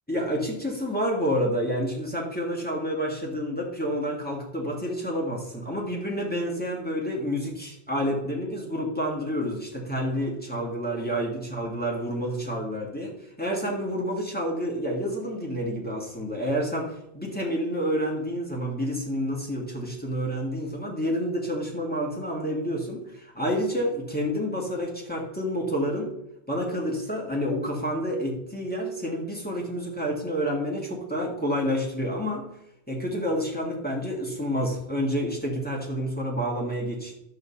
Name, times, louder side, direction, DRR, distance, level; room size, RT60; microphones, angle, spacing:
voice 1, 0.1-13.1 13.4-26.1 26.5-32.5 32.9-37.1, equal, 10° left, -2 dB, 1.9 m, -29 dB
11.0 x 4.8 x 7.1 m, 0.82 s
omnidirectional pair, 1.1 m